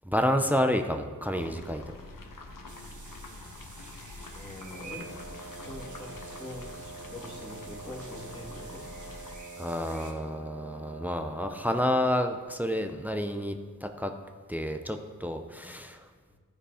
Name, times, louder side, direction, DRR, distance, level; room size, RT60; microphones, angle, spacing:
voice 1, 0.0-1.8 9.6-13.5 13.8-14.1 14.5-16.1, left 1 dB, 5° right, 5 dB, 0.7 m, -29 dB
sound 1, 1.3-9.3, left 3 dB, 80° left, 1.1 m, -46 dB
sound 2, 2.7-10.1, right 4 dB, 65° right, 1.4 m, -50 dB
voice 2, 4.3-5.1 5.6-8.9 15.6-15.8 16.3-16.4, left 1 dB, 15° left, -4 dB, 2.4 m, -44 dB
Wind instrument woodwind instrument, 4.7-12.1, right 3 dB, 45° left, 1.2 m, -46 dB
14.0 x 5.1 x 5.0 m, 1.5 s
wide cardioid pair, 60°, 33 cm